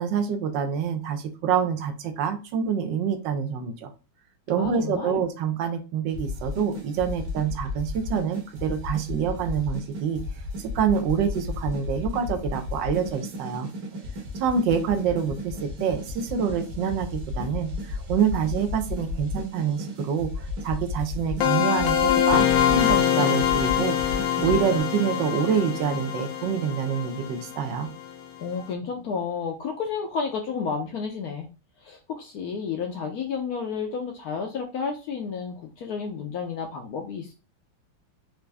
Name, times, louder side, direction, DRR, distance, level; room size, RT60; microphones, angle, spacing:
voice 1, 0.0-3.9 4.5-10.2 10.6-13.7 14.4-20.3 20.6-27.9, right 7 dB, 75° right, 6 dB, 1.3 m, -26 dB
voice 2, 4.6-5.2 28.4-31.5 31.8-37.3, left 5 dB, 70° left, 3 dB, 0.9 m, -31 dB
sound 1, 6.1-24.8, left 3 dB, 55° right, 1.6 m, -34 dB
sound 2, 21.4-28.1, left 9 dB, 85° left, 1.4 m, -24 dB
4.6 x 2.6 x 3.3 m, 0.32 s
omnidirectional pair, 2.1 m